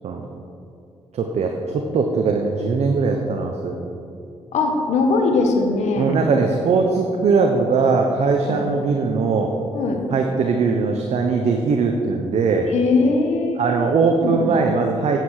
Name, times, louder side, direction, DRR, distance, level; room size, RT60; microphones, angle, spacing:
voice 1, 1.1-3.9 6.0-9.5 10.1-12.7 13.6-15.2, right 4 dB, 70° right, 2 dB, 0.9 m, -20 dB
voice 2, 4.5-6.1 8.5-8.6 9.7-10.0 12.7-13.6 14.1-14.7, left 3 dB, 80° left, 3 dB, 1.6 m, -20 dB
9.1 x 7.8 x 6.5 m, 2.5 s
cardioid pair, 65°, 12 cm